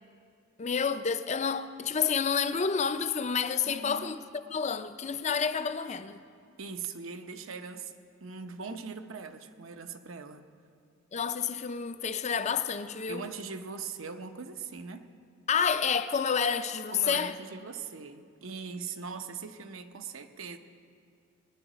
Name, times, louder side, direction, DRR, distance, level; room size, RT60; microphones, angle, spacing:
voice 1, 0.6-4.2 4.5-6.2 11.1-13.3 15.5-17.3, left 6 dB, 35° left, 0.5 m, -29 dB
voice 2, 3.6-4.1 6.6-7.9 8.2-10.4 13.1-15.1 16.9-20.6, right 5 dB, 75° right, 0.8 m, -41 dB
21.0 x 10.0 x 5.0 m
head